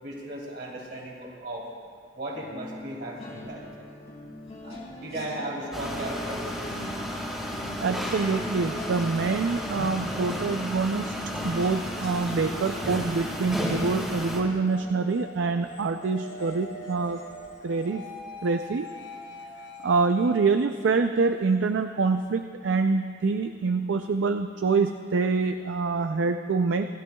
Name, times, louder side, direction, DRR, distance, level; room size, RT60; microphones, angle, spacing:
voice 1, 0.0-1.7 2.1-3.6 4.6-6.5, right 1 dB, 60° right, -4 dB, 3.3 m, -36 dB
sound 1, 2.3-17.5 17.9-18.1 18.4-18.6, left 1 dB, 35° left, 2.7 m, -42 dB
sound 2, 5.7-14.4, equal, 5° right, 2.5 m, -33 dB
voice 2, 7.8-11.1 11.4-17.2 17.6-18.0 18.4-18.9 19.8-26.9, right 4 dB, 80° right, 7 dB, 0.4 m, -25 dB
sound 3, 14.7-22.2, equal, 80° left, 3.4 m, -44 dB
27.5 x 13.0 x 2.3 m, 2.1 s
head